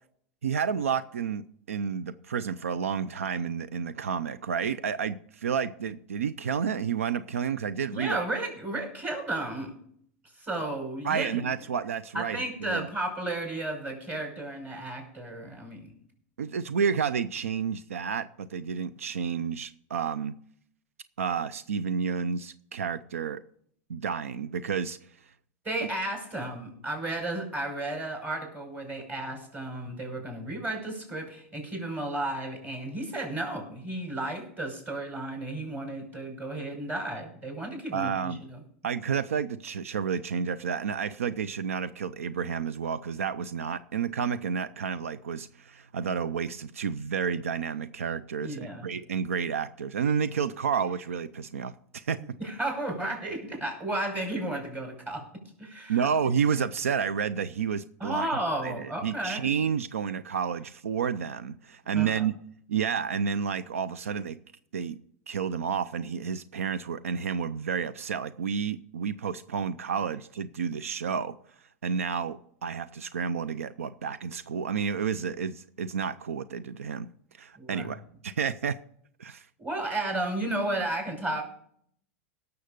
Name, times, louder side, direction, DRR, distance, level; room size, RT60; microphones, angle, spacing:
voice 1, 0.4-8.2 11.0-12.9 16.4-20.3 21.2-23.4 23.9-25.0 37.9-38.4 38.8-52.4 55.9-58.3 58.6-62.3 62.7-64.4 64.7-65.0 65.3-71.3 71.8-77.1 77.4-78.8 79.2-79.5, right 7 dB, 90° right, 16 dB, 0.5 m, -30 dB
voice 2, 7.9-9.7 10.4-11.5 12.1-15.9 25.6-38.6 48.4-48.9 52.4-55.3 55.6-56.1 58.0-59.6 61.9-62.2 77.6-77.9 79.6-81.4, right 1 dB, 25° right, 2 dB, 5.7 m, -33 dB
17.5 x 6.9 x 5.1 m, 0.64 s
hypercardioid pair, 100°, 7 cm